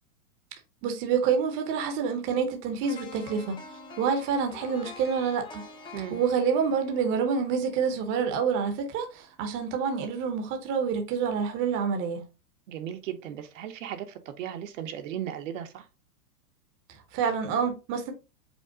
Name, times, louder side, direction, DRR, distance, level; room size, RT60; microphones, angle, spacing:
voice 1, 0.8-3.6 4.0-5.6 6.1-12.2 17.1-18.1, right 6 dB, 25° right, 0.8 m, -27 dB
sound 1, 2.8-8.8 9.2-9.4, left 5 dB, 10° left, 0.6 m, -47 dB
voice 2, 12.7-15.9, right 10 dB, 55° right, 0.9 m, -36 dB
5.2 x 2.1 x 4.8 m
hypercardioid pair, 145°, 45 cm